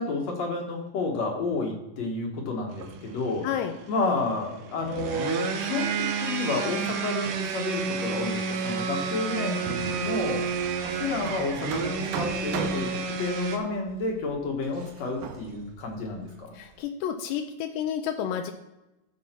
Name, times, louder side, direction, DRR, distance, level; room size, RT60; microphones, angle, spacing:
voice 1, 0.0-3.5 3.9-10.4 10.8-12.9 13.2-16.5, left 3 dB, 60° left, 0 dB, 1.9 m, -30 dB
sound 1, 2.7-13.6, right 5 dB, 70° right, 2.2 m, -31 dB
Hammer, 9.9-16.8, right 7 dB, 90° right, 3.2 m, -40 dB
voice 2, 16.5-18.5, left 9 dB, 85° left, 5 dB, 2.8 m, -30 dB
15.0 x 5.7 x 4.4 m, 0.95 s
omnidirectional pair, 4.9 m